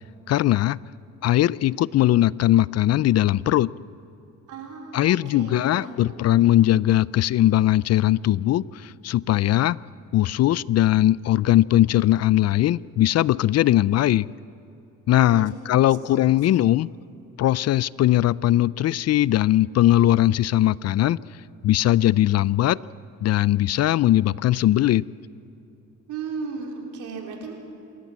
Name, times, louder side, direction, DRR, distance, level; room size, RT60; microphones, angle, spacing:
voice 1, 0.3-0.8 1.2-3.7 4.9-9.8 10.1-14.3 15.1-16.9 17.4-21.2 21.6-22.8 23.2-25.0, left 13 dB, 60° left, 22 dB, 0.4 m, -20 dB
voice 2, 4.5-6.2 15.3-15.5 15.8-16.2 26.1-27.5, right 4 dB, 85° right, 1 dB, 3.7 m, -35 dB
27.0 x 14.0 x 7.3 m, 2.8 s
cardioid pair, 90°, 30 cm